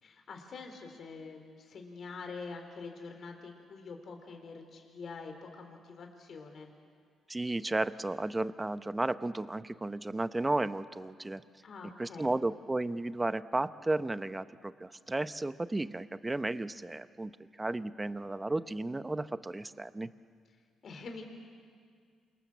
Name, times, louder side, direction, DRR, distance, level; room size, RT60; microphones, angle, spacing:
voice 1, 0.0-6.7 11.6-12.3 20.8-21.2, left 4 dB, 55° left, 4 dB, 3.9 m, -45 dB
voice 2, 7.3-11.4 12.0-17.3 17.6-20.1, right 2 dB, 15° right, 12 dB, 0.9 m, -33 dB
28.5 x 26.0 x 7.4 m, 2.1 s
cardioid pair, 90°, 0 cm